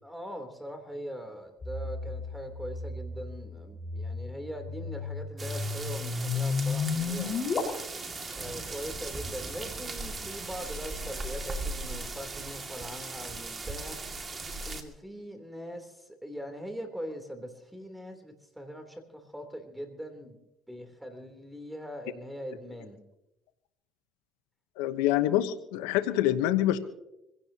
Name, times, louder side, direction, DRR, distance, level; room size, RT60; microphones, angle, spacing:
voice 1, 0.0-7.6 8.3-20.4 20.7-23.0, equal, 5° right, 6 dB, 3.3 m, -41 dB
sound 1, 1.6-7.6, left 5 dB, 35° left, 4.7 m, -33 dB
sound 2, 5.4-14.8, right 3 dB, 30° right, 2.2 m, -38 dB
voice 2, 24.8-26.8, left 13 dB, 90° left, 10 dB, 1.0 m, -26 dB
25.5 x 17.0 x 2.9 m, 0.90 s
supercardioid pair, 100°, 0 cm